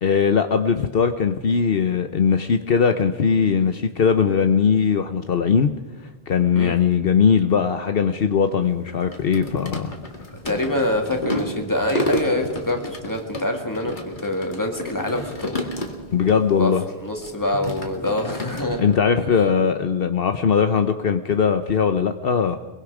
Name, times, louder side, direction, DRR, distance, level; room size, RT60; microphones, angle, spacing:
voice 1, 0.0-5.7 6.3-9.9 16.1-16.8 18.8-22.6, left 6 dB, 65° left, 8 dB, 1.1 m, -20 dB
sound 1, 8.6-16.4 16.7-19.0, left 1 dB, 50° left, 2.5 m, -31 dB
voice 2, 10.4-15.7 16.5-16.7 17.0-18.8, left 1 dB, 20° left, 3 dB, 2.5 m, -25 dB
23.5 x 22.5 x 5.0 m, 1.2 s
omnidirectional pair, 1.1 m